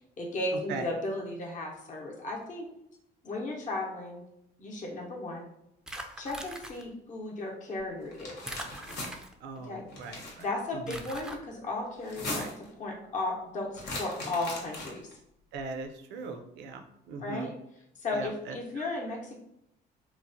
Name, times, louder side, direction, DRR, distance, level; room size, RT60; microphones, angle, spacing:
voice 1, 0.2-2.7 3.2-4.2 4.6-5.5 6.2-8.4 9.6-9.9 10.4-12.5 12.8-15.1 17.2-17.5 18.0-19.4, left 2 dB, 45° left, -1 dB, 0.7 m, -35 dB
sound 1, 5.9-6.8 8.5-9.6 10.9-11.4, right 1 dB, 5° right, 0.3 m, -41 dB
sound 2, 8.1-9.1 9.9-10.4 12.0-12.7 13.7-15.1, left 2 dB, 80° left, 0.8 m, -38 dB
voice 2, 9.4-10.5 10.7-11.1 12.4-12.5 15.5-17.5 18.1-18.9, right 4 dB, 85° right, 7 dB, 0.4 m, -40 dB
3.0 x 2.0 x 2.6 m, 0.81 s
cardioid pair, 75°, 18 cm